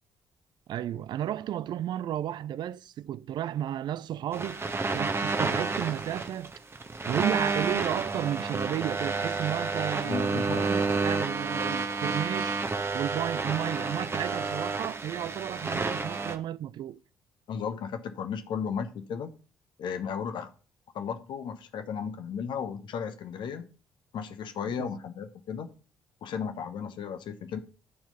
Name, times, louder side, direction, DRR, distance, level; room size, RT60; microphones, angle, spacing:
voice 1, 0.7-4.6 4.9-6.5 7.1-12.6 12.9-17.0 24.8-24.9, right 11 dB, 50° right, 0.4 m, -33 dB
sound 1, 4.3-16.4, right 4 dB, 25° right, 1.1 m, -30 dB
voice 2, 10.0-10.7 17.5-19.3 19.8-20.5 20.9-23.7 24.1-25.7 26.2-27.6, left 7 dB, 55° left, 1.0 m, -35 dB
11.5 x 4.5 x 5.4 m
figure-of-eight pair, 45°, 10 cm